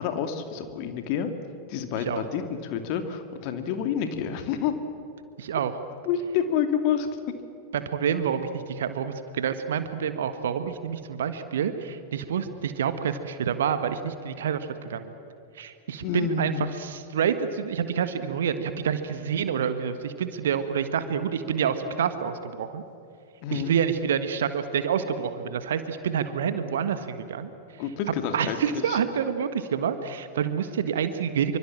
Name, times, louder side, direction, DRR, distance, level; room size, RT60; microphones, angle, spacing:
voice 1, 0.0-1.3 1.7-4.8 6.1-7.1 16.0-16.7 23.4-23.7 27.8-29.0, left 8 dB, 45° left, 7 dB, 2.4 m, -28 dB
voice 2, 5.4-5.7 7.7-15.1 15.5-22.8 23.5-27.5 28.3-31.6, right 8 dB, 60° right, 10 dB, 1.5 m, -28 dB
26.5 x 25.5 x 7.5 m, 2.7 s
figure-of-eight pair, 90°, 0 cm